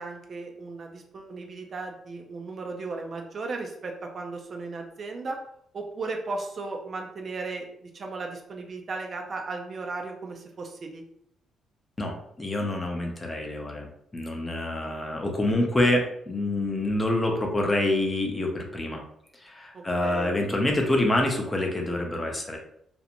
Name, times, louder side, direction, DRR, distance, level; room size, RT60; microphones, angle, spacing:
voice 1, 0.0-5.4 5.7-11.0 19.7-20.3, right 3 dB, 45° right, 2 dB, 0.4 m, -36 dB
voice 2, 12.0-19.0 19.3-22.6, left 1 dB, 15° left, 1 dB, 0.5 m, -26 dB
2.5 x 2.1 x 2.8 m, 0.71 s
cardioid pair, 90°, 0 cm